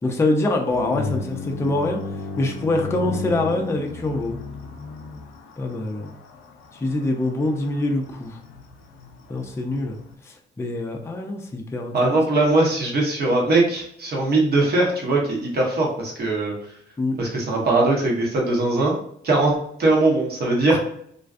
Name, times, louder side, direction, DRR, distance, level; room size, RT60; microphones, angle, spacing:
voice 1, 0.0-2.0 2.4-4.4 5.6-6.1 6.7-8.4 9.3-10.0 10.3-12.2 17.0-17.1 20.7-20.8, left 2 dB, 15° left, 2 dB, 0.4 m, -24 dB
sound 1, 0.7-10.1, left 3 dB, 80° left, 0.5 m, -35 dB
voice 2, 11.9-16.5 17.2-18.9 19.2-19.5 19.8-20.8, right 2 dB, 50° right, -2 dB, 1.0 m, -20 dB
2.5 x 2.2 x 2.4 m, 0.68 s
cardioid pair, 90°, 20 cm